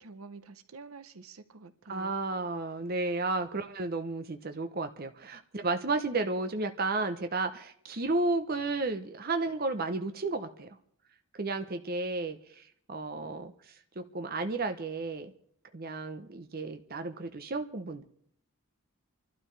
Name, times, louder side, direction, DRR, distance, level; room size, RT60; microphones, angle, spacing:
voice 1, 0.0-2.2, right 4 dB, 75° right, 12 dB, 0.8 m, -48 dB
voice 2, 1.9-10.7 11.4-12.6 12.9-13.5 14.0-15.3 15.7-18.0, right 3 dB, 45° right, 7 dB, 0.8 m, -32 dB
29.0 x 12.0 x 3.3 m, 0.66 s
head